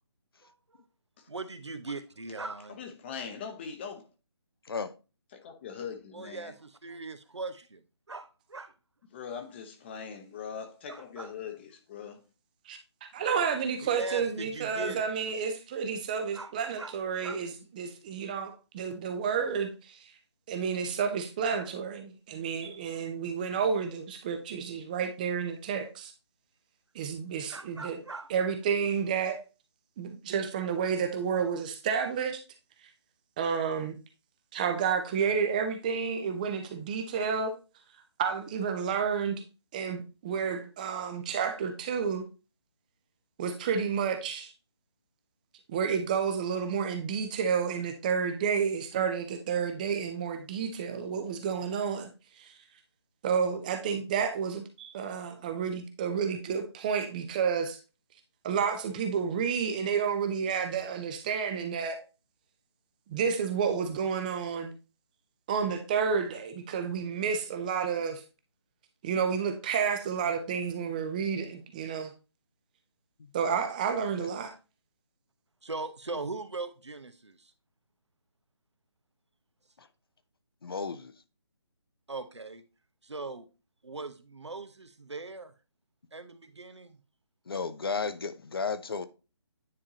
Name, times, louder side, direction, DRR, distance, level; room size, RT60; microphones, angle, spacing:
voice 1, 1.3-2.8 6.1-7.8 8.1-8.7 10.9-11.3 13.2-13.5 13.8-15.1 16.3-16.5 16.8-16.9 17.2-17.4 27.5-28.3 75.6-77.4 82.1-82.6 83.0-83.5 83.8-85.5 86.1-87.0, right 3 dB, 80° right, 1.0 m, -40 dB
voice 2, 2.7-4.1 5.3-6.5 9.1-12.2, left 6 dB, 25° left, 0.9 m, -41 dB
voice 3, 13.1-20.0 20.5-26.1 26.9-28.0 28.3-29.4 30.0-32.4 33.4-33.9 34.5-37.5 38.2-39.4 39.7-42.2 43.4-44.5 45.7-52.1 52.4-52.5 53.2-57.8 58.4-62.0 63.1-64.7 65.5-68.2 69.0-72.1 73.3-74.5, right 6 dB, 20° right, 0.6 m, -30 dB
voice 4, 80.6-81.1 87.5-89.1, left 5 dB, 55° left, 0.7 m, -33 dB
9.6 x 3.6 x 2.8 m
figure-of-eight pair, 150°, 14 cm